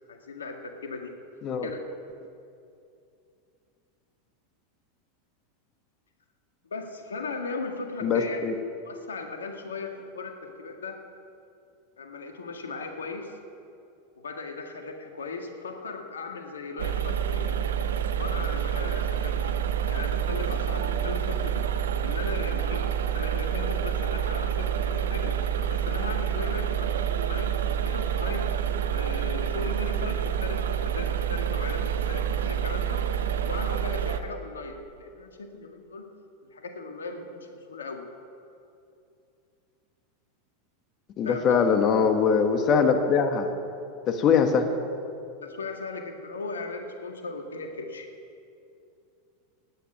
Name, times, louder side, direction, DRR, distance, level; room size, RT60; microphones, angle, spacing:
voice 1, 0.1-1.1 1.6-1.8 6.7-8.4 8.8-11.0 12.0-13.4 14.2-17.6 18.2-21.6 22.0-22.8 23.1-25.4 25.7-26.9 27.3-28.5 28.8-36.0 36.5-38.0 41.2-41.5 45.4-48.1, left 3 dB, 80° left, 4 dB, 1.8 m, -37 dB
voice 2, 8.0-8.6 41.2-43.5 44.1-44.7, left 6 dB, 40° left, 6 dB, 1.5 m, -22 dB
sound 1, 16.8-34.2, right 8 dB, 75° right, 0.9 m, -28 dB
15.5 x 10.0 x 9.3 m, 2.6 s
hypercardioid pair, 90°, 0 cm